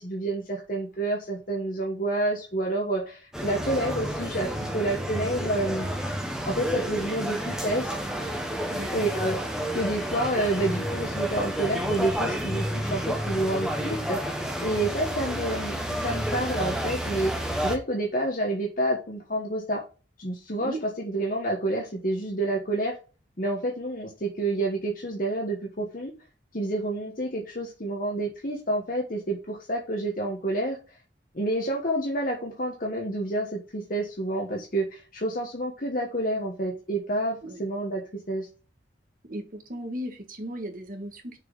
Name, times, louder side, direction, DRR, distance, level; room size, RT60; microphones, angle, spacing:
voice 1, 0.0-5.9 6.5-7.9 8.9-9.4 9.7-19.8 20.2-23.0 23.4-26.1 26.5-30.8 31.3-38.5, right 1 dB, 45° left, -1 dB, 1.3 m, -29 dB
sound 1, 3.3-17.8, equal, 5° right, 1.2 m, -30 dB
voice 2, 8.7-9.1 20.6-20.8 37.4-37.6 39.2-41.4, right 1 dB, 45° right, 5 dB, 1.6 m, -36 dB
6.7 x 4.6 x 5.4 m, 0.34 s
head